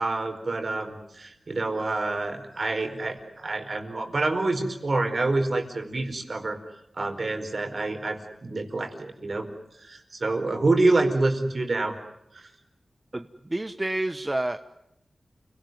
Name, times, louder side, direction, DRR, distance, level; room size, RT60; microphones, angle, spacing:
voice 1, 0.0-6.6 7.0-9.5 9.8-11.9 12.3-12.5, right 2 dB, 55° right, 5 dB, 4.7 m, -27 dB
voice 2, 13.1-14.6, right 1 dB, 25° right, 9 dB, 1.1 m, -29 dB
29.5 x 18.5 x 9.4 m, 0.86 s
wide cardioid pair, 75°, 0 cm